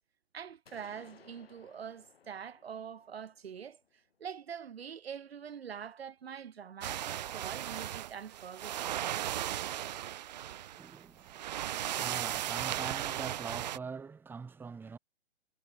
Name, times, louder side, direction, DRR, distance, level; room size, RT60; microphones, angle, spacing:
voice 1, 0.3-3.8 4.2-9.3, right 7 dB, 65° right, 1.0 m, -44 dB
sound 1, 0.7-4.5, left 7 dB, 60° left, 4.0 m, -61 dB
sound 2, 6.8-13.8, right 12 dB, 40° right, 0.5 m, -36 dB
voice 2, 10.8-15.0, right 5 dB, 5° right, 1.0 m, -44 dB
figure-of-eight pair, 120°, 33 cm